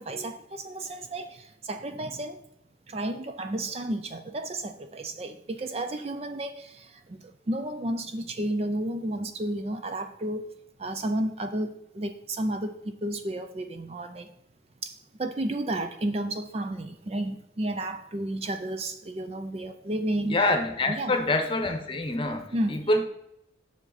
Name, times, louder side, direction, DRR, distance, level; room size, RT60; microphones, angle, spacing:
voice 1, 0.0-2.4 2.9-7.2 7.5-10.5 10.8-14.3 14.8-20.4 20.9-21.2 22.5-22.8, right 1 dB, 30° right, 8 dB, 0.4 m, -32 dB
voice 2, 20.2-23.0, left 2 dB, 25° left, 5 dB, 0.9 m, -26 dB
7.3 x 6.8 x 4.0 m, 0.80 s
head